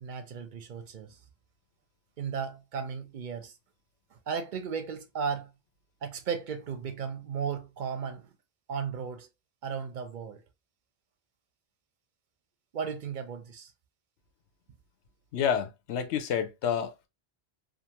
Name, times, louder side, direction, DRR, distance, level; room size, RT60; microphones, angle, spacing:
voice 1, 0.0-1.2 2.2-3.5 4.3-5.5 6.0-8.3 8.7-9.3 9.6-10.4 12.7-13.7, right 6 dB, 55° right, 0.6 m, -35 dB
voice 2, 15.3-17.1, left 8 dB, 90° left, 0.9 m, -29 dB
2.5 x 2.4 x 2.8 m
omnidirectional pair, 1.1 m